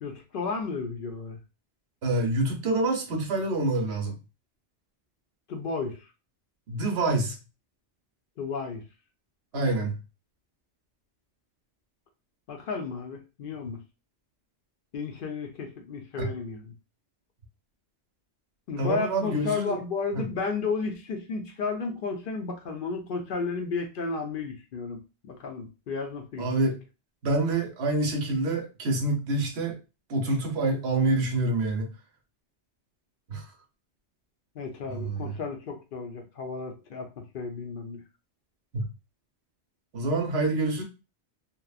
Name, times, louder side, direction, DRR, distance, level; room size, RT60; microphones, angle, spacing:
voice 1, 0.0-1.4 5.5-6.1 8.4-8.8 9.5-9.9 12.5-13.8 14.9-16.7 18.7-26.5 34.6-38.0, left 4 dB, 60° left, 0.7 m, -33 dB
voice 2, 2.0-4.2 6.7-7.4 9.5-10.0 16.2-16.3 18.8-19.8 20.1-20.3 26.4-26.8 27.2-29.8 30.1-31.9 33.3-33.5 34.9-35.3 38.7-38.9 39.9-40.8, right 2 dB, 70° right, 1.0 m, -27 dB
2.9 x 2.0 x 2.3 m
omnidirectional pair, 1.2 m